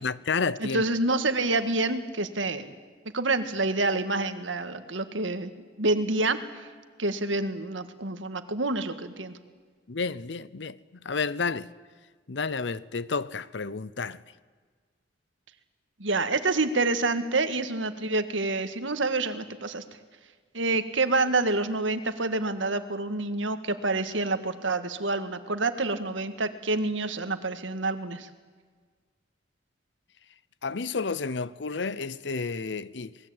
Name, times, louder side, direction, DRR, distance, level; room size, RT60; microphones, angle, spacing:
voice 1, 0.0-0.8 9.9-11.7 12.3-14.2 30.6-33.2, left 4 dB, 65° left, 0.8 m, -31 dB
voice 2, 0.6-2.7 3.1-5.5 5.8-6.4 7.0-9.3 16.0-19.8 20.5-28.3, right 2 dB, 85° right, 1.8 m, -27 dB
27.5 x 20.0 x 8.8 m
head